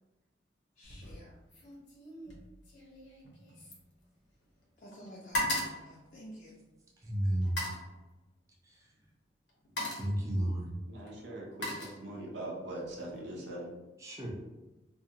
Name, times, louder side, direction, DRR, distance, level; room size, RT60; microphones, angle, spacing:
sound 1, 0.8-1.2 1.5-4.6 4.9-6.8 7.4-7.9 8.9-9.1 9.5-10.2 11.1-12.4 12.8-13.2, left 1 dB, 85° left, 0.8 m, -38 dB
voice 1, 0.8-1.4 4.8-6.6, equal, 50° left, -4 dB, 0.5 m, -51 dB
voice 2, 7.0-7.6 8.6-8.9 9.9-10.8 14.0-14.3, right 1 dB, 15° right, -2 dB, 0.5 m, -32 dB
voice 3, 10.9-13.7, right 1 dB, 75° right, -2 dB, 0.6 m, -41 dB
2.6 x 2.2 x 2.7 m, 1.1 s
head